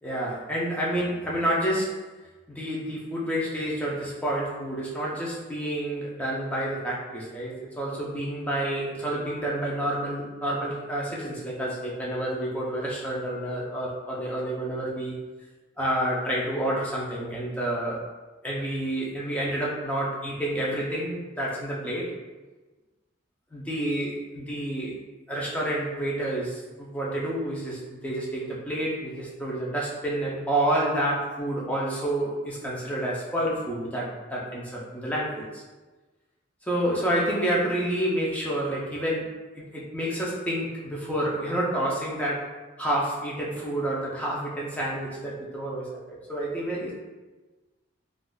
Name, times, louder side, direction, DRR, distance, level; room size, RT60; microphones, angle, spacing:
voice 1, 0.0-2.0 2.5-15.2 15.8-18.0 18.4-22.1 23.5-25.0 25.3-35.6 36.6-42.5 42.8-46.9, right 1 dB, 5° left, -5 dB, 0.5 m, -29 dB
3.8 x 2.4 x 2.2 m, 1.2 s
head